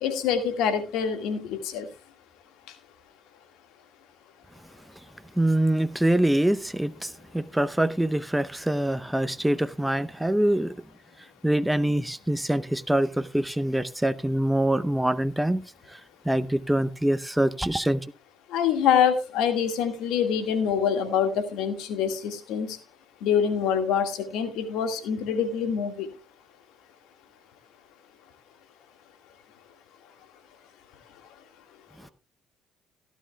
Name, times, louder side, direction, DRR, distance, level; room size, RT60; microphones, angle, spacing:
voice 1, 0.0-1.9 18.5-22.8 23.2-26.1, left 7 dB, 80° left, 1.8 m, -25 dB
voice 2, 5.4-10.7 11.4-15.6 15.9-16.0 16.3-18.0, right 1 dB, 5° right, 0.7 m, -24 dB
16.5 x 11.5 x 2.3 m
supercardioid pair, 70°, 0 cm